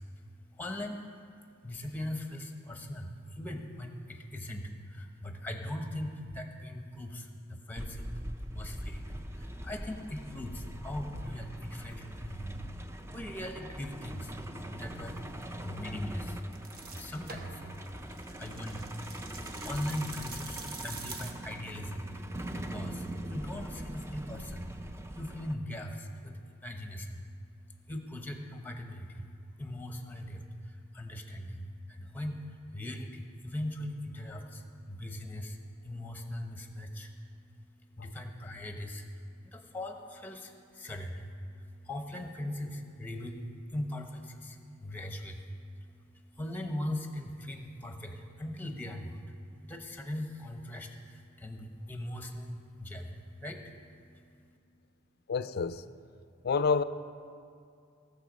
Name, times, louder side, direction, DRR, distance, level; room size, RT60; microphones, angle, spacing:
voice 1, 0.0-54.6, left 1 dB, 10° left, 0.9 m, -40 dB
Truck, 7.8-25.5, right 1 dB, 15° right, 0.5 m, -42 dB
sound 1, 14.9-21.3, right 3 dB, 50° right, 1.0 m, -47 dB
voice 2, 55.3-55.8 56.4-56.8, left 5 dB, 50° left, 0.4 m, -28 dB
17.0 x 6.9 x 5.1 m
head